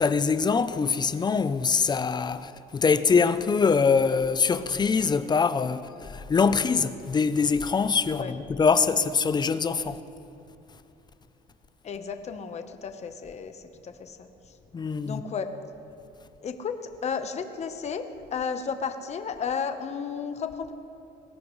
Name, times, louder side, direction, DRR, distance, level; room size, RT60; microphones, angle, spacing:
voice 1, 0.0-10.0 14.7-15.2, left 5 dB, 25° left, 0.6 m, -24 dB
voice 2, 11.8-14.3 15.0-15.5 16.4-16.8 17.0-18.1 18.3-20.7, left 6 dB, 40° left, 1.0 m, -33 dB
20.5 x 16.5 x 3.2 m
cardioid pair, 110°, 17 cm